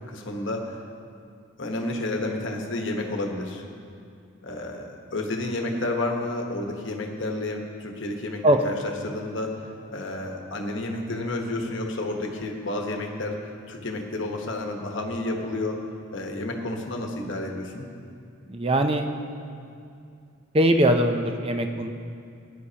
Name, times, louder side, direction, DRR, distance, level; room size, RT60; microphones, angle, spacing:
voice 1, 0.1-0.8 1.6-3.6 4.4-15.8 16.1-17.8, left 2 dB, 60° left, 2 dB, 1.1 m, -31 dB
voice 2, 18.5-19.0 20.5-21.9, right 1 dB, 25° right, 6 dB, 0.5 m, -21 dB
17.0 x 9.6 x 2.9 m, 2.5 s
head